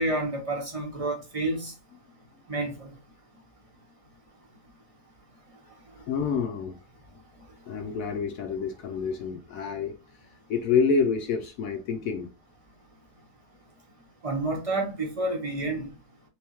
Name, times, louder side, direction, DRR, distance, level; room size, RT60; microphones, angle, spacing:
voice 1, 0.0-1.7 2.5-2.9 14.2-15.9, right 2 dB, 25° right, 1.0 m, -29 dB
voice 2, 6.1-6.8 7.7-12.3, left 5 dB, 70° left, 0.9 m, -28 dB
3.4 x 3.4 x 2.9 m
omnidirectional pair, 1.6 m